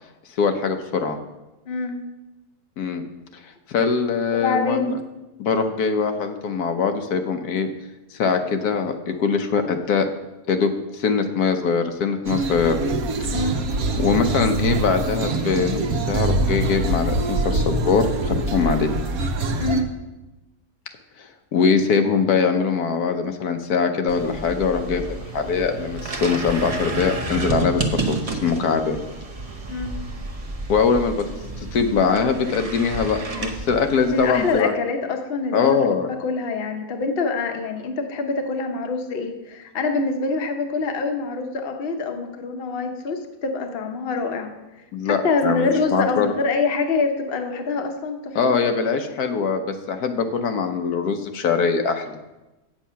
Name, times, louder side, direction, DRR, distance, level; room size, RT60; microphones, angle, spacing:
voice 1, 0.4-1.2 2.8-3.0 3.4-4.9 5.4-7.7 8.1-10.1 10.5-12.8 13.2-13.3 14.0-15.8 16.1-18.9 21.2-25.0 25.3-29.0 30.7-31.3 31.6-34.8 35.5-36.1 44.9-46.3 48.3-52.2, left 5 dB, 75° left, 6 dB, 1.3 m, -22 dB
voice 2, 1.7-2.0 4.3-4.9 13.3-13.6 19.6-19.9 29.7-29.9 34.0-35.8 36.2-44.5 45.0-48.4, left 3 dB, 45° left, 5 dB, 1.0 m, -25 dB
sound 1, 12.3-19.8, right 2 dB, 65° right, 1.3 m, -24 dB
sound 2, 24.1-34.6, right 3 dB, 30° right, 0.8 m, -31 dB
8.7 x 7.4 x 5.7 m, 1.0 s
omnidirectional pair, 1.7 m